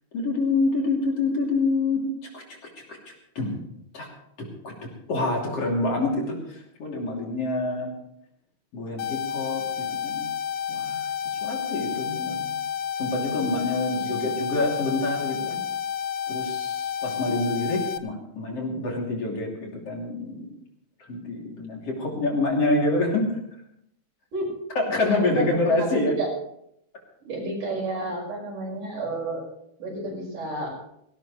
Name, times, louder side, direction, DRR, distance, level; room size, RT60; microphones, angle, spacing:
voice 1, 0.1-2.0 2.3-2.4 2.9-3.0 3.4-3.6 3.9-4.1 4.4-7.9 8.7-10.3 10.7-12.4 13.0-15.6 16.3-20.5 21.1-23.3 24.8-26.2, left 2 dB, 50° left, -1 dB, 3.9 m, -27 dB
sound 1, 9.0-18.0, left 9 dB, 70° left, 1.7 m, -30 dB
voice 2, 11.9-12.5 13.9-14.3 24.3-24.6 25.1-25.9 26.2-26.3 27.2-29.4 29.8-30.8, right 2 dB, 80° right, -2 dB, 7.2 m, -32 dB
18.0 x 17.5 x 3.2 m, 0.76 s
omnidirectional pair, 3.6 m